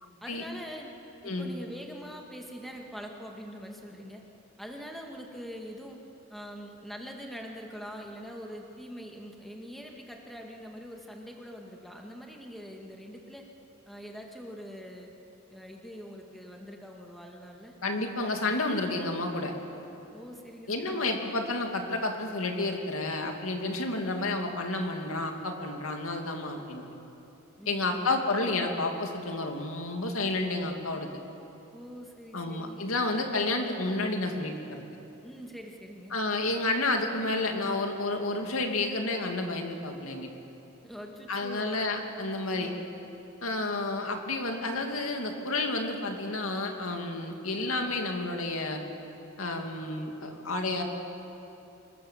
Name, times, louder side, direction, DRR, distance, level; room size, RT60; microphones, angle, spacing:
voice 1, 0.2-0.9 1.2-4.2 4.6-6.0 6.3-13.4 13.9-15.1 15.5-17.7 20.1-21.3 27.6-28.3 31.7-32.8 35.2-36.2 40.8-41.8 42.5-42.9, equal, ahead, 1 dB, 2.1 m, -43 dB
voice 2, 17.8-19.5 20.7-26.8 27.7-31.1 32.3-34.8 36.1-40.3 41.3-42.7 43.4-48.8 49.4-50.8, left 2 dB, 80° left, 3 dB, 2.5 m, -30 dB
26.0 x 21.5 x 7.4 m, 3.0 s
head